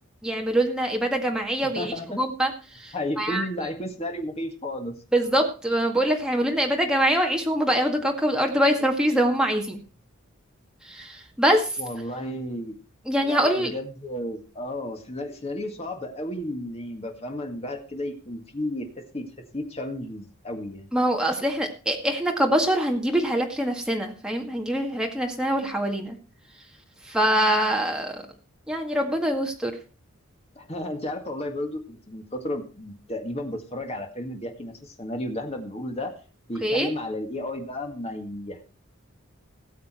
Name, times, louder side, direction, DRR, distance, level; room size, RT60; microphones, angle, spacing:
voice 1, 0.2-3.5 5.1-9.8 10.8-11.8 13.1-13.7 20.9-26.2 27.0-28.2 28.7-29.8 36.6-36.9, right 1 dB, 5° right, 1 dB, 2.0 m, -24 dB
voice 2, 1.8-2.3 2.9-5.0 11.8-12.8 13.2-19.3 19.5-20.9 30.6-36.1 36.5-38.7, left 1 dB, 30° left, 4 dB, 2.0 m, -33 dB
18.5 x 7.4 x 4.4 m, 0.35 s
head